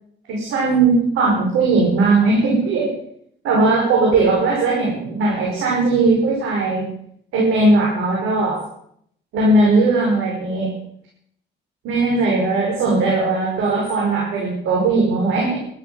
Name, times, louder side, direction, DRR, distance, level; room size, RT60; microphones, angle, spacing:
voice 1, 0.3-2.9 3.4-6.9 7.3-8.6 9.3-10.7 11.8-15.6, right 3 dB, 90° right, -3 dB, 5.6 m, -18 dB
13.0 x 12.5 x 7.1 m, 0.70 s
cardioid pair, 90°, 20 cm